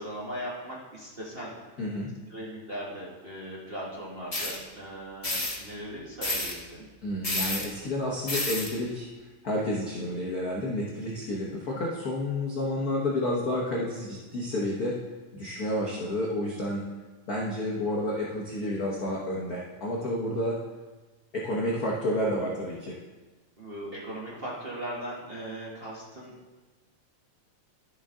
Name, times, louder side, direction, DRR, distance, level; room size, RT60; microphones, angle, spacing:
voice 1, 0.0-1.5 2.3-6.8 23.6-26.3, right 1 dB, 45° right, -5 dB, 0.7 m, -38 dB
voice 2, 1.8-2.1 7.0-9.1 9.4-15.0 15.3-16.8 17.3-20.6 21.3-23.0, left 1 dB, 85° left, -4 dB, 0.8 m, -30 dB
sound 1, 4.3-4.5 5.2-5.5 6.2-6.5 7.2-7.6 8.3-8.7, left 2 dB, 70° left, 0.3 m, -29 dB
12.0 x 6.4 x 3.7 m, 1.3 s
omnidirectional pair, 3.3 m